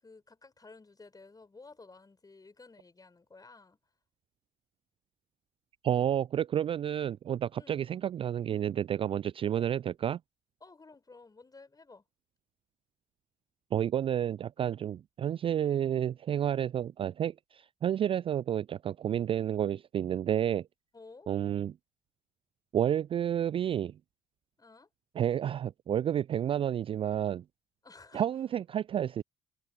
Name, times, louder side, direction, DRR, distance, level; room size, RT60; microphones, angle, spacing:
voice 1, 0.0-3.8 7.6-7.8 9.6-9.7 10.6-12.0 20.9-21.3 24.6-24.9 27.8-28.2, left 3 dB, 20° left, 6.8 m, -54 dB
voice 2, 5.8-10.2 13.7-20.7 21.3-21.7 22.7-23.9 25.2-27.4 28.1-29.2, right 10 dB, 30° right, 0.4 m, -30 dB
figure-of-eight pair, 50°, 18 cm